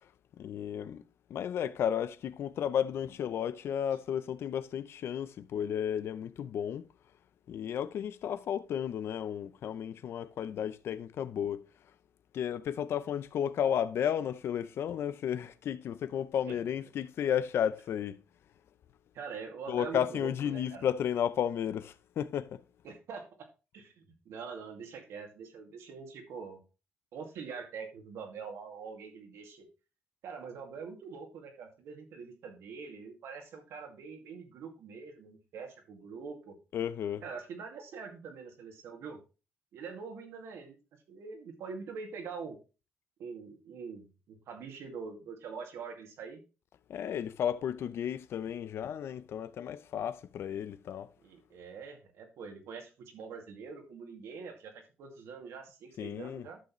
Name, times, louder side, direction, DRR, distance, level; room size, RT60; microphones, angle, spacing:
voice 1, 0.4-1.0 1.3-6.9 7.5-11.6 12.3-18.2 19.7-22.6 36.7-37.2 46.9-51.1 56.0-56.5, left 9 dB, 70° left, 0.6 m, -33 dB
voice 2, 16.5-16.8 19.1-20.9 22.8-23.2 23.7-26.6 27.1-29.7 30.2-36.5 37.2-39.2 39.7-40.8 41.1-42.6 43.2-46.4 51.2-54.7 55.0-56.6, right 5 dB, 80° right, 2.3 m, -44 dB
11.5 x 6.6 x 3.1 m
cardioid pair, 95°, 4 cm